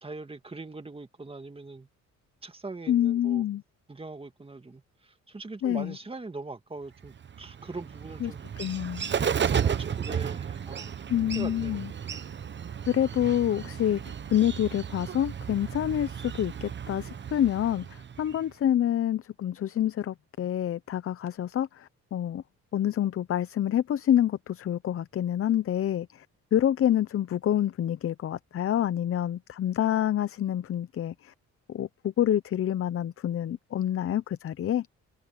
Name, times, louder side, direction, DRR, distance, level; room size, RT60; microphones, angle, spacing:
voice 1, 0.0-1.9 2.4-3.4 3.9-8.4 9.4-11.0 11.4-11.8, right 3 dB, 20° right, 2.1 m, -41 dB
voice 2, 2.9-3.6 5.6-6.0 8.2-9.1 11.1-11.9 12.9-22.4 22.7-26.3 26.5-31.3 31.7-34.9, left 11 dB, 50° left, 0.7 m, -27 dB
Bird, 7.0-18.5, right 7 dB, 40° right, 1.0 m, -33 dB
cardioid pair, 90°, 30 cm